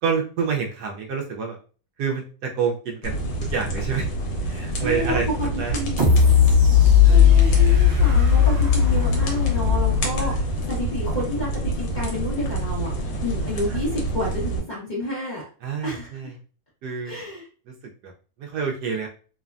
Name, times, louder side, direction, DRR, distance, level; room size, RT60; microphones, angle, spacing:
voice 1, 0.0-1.6 2.0-4.1 4.3-5.8 7.0-7.3 10.2-10.5 13.7-13.8 15.6-16.3 16.8-17.2 17.7-17.8 18.0-18.1 18.4-19.1, right 6 dB, 75° right, 1 dB, 1.0 m, -28 dB
sound 1, 3.0-14.6, right 2 dB, 75° left, 1.4 m, -28 dB
voice 2, 4.7-5.5 5.7-6.1 7.1-12.9 13.2-15.4 15.8-16.1 17.0-17.4, left 1 dB, 35° left, -8 dB, 0.8 m, -30 dB
sound 2, 6.0-10.9 11.3-11.4, left 8 dB, 50° right, 0.8 m, -17 dB
3.2 x 2.1 x 2.4 m, 0.38 s
omnidirectional pair, 1.9 m